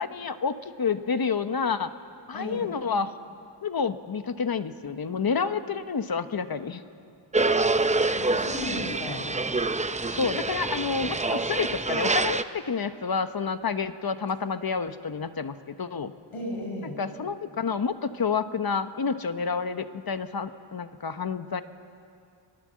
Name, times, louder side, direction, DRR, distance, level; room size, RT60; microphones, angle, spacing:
voice 1, 0.0-1.9 2.3-3.1 3.6-6.8 10.1-16.1 17.0-21.6, left 5 dB, 45° left, 10 dB, 1.0 m, -29 dB
voice 2, 2.3-2.7 8.2-9.3 16.3-17.0, left 1 dB, 85° left, -1 dB, 6.4 m, -34 dB
sound 1, 7.3-12.4, right 3 dB, 15° right, 0.6 m, -26 dB
26.5 x 18.5 x 7.6 m, 2.4 s
wide cardioid pair, 100°, 50 cm